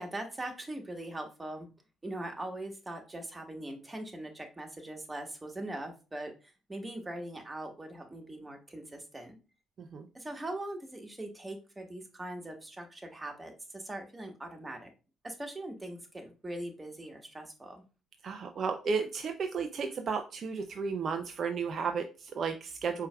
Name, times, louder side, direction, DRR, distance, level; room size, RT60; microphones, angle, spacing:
voice 1, 0.0-1.7 2.0-9.4 10.1-14.9 15.2-17.8, right 1 dB, 20° right, 3 dB, 1.4 m, -41 dB
voice 2, 18.2-23.1, right 5 dB, 50° right, 6 dB, 0.4 m, -33 dB
4.6 x 4.5 x 2.2 m, 0.33 s
hypercardioid pair, 50°, 0 cm